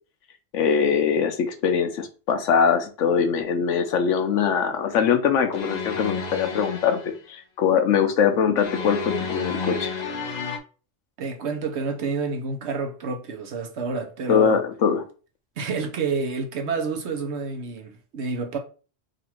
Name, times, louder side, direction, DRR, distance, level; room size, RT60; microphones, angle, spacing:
voice 1, 0.5-9.9 14.3-15.0, left 7 dB, 85° left, 1.1 m, -22 dB
sound 1, 5.5-7.2 8.6-10.6, left 4 dB, 50° left, 0.5 m, -31 dB
voice 2, 11.2-14.6 15.6-18.6, right 4 dB, 65° right, 1.1 m, -29 dB
3.9 x 2.6 x 4.4 m
omnidirectional pair, 1.2 m